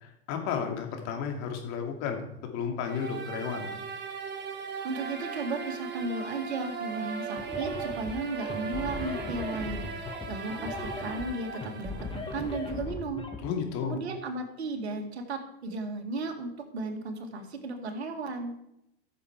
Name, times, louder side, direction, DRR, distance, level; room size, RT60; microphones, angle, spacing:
voice 1, 0.0-3.7 13.4-14.0, left 7 dB, 55° left, 4 dB, 2.4 m, -33 dB
sound 1, 2.8-12.8, right 6 dB, 35° right, 1.7 m, -38 dB
voice 2, 4.8-10.0 10.3-13.2 13.8-18.5, right 3 dB, 85° right, 4 dB, 2.0 m, -35 dB
sound 2, 7.4-13.4, left 3 dB, 15° left, 1.8 m, -38 dB
14.0 x 7.0 x 4.7 m, 0.81 s
hypercardioid pair, 95°, 32 cm